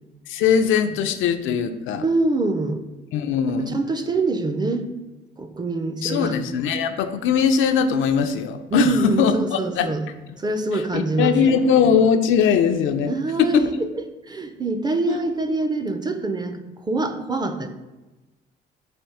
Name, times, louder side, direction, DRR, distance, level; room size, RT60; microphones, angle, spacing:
voice 1, 0.3-2.0 3.1-3.8 6.0-9.9 10.7-13.1 13.4-13.7 15.1-15.2, left 6 dB, 80° left, 8 dB, 0.4 m, -20 dB
voice 2, 1.9-2.8 3.7-4.9 5.4-6.4 8.7-10.0 10.4-11.4 13.1-13.7 14.3-17.7, right 3 dB, 20° right, 8 dB, 0.4 m, -24 dB
4.3 x 2.6 x 4.8 m, 1.1 s
cardioid pair, 90°, 20 cm